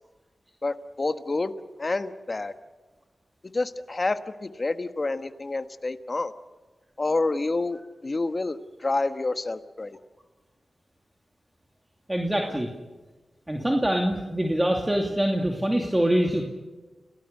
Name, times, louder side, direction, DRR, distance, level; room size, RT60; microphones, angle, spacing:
voice 1, 0.6-1.5 1.8-2.5 3.5-6.3 7.0-10.0 12.4-12.6, left 3 dB, 40° left, 9 dB, 1.4 m, -28 dB
voice 2, 12.1-12.7 13.5-16.4, right 1 dB, 15° right, 1 dB, 2.6 m, -24 dB
29.5 x 18.0 x 6.8 m, 1.2 s
cardioid pair, 65°, 0 cm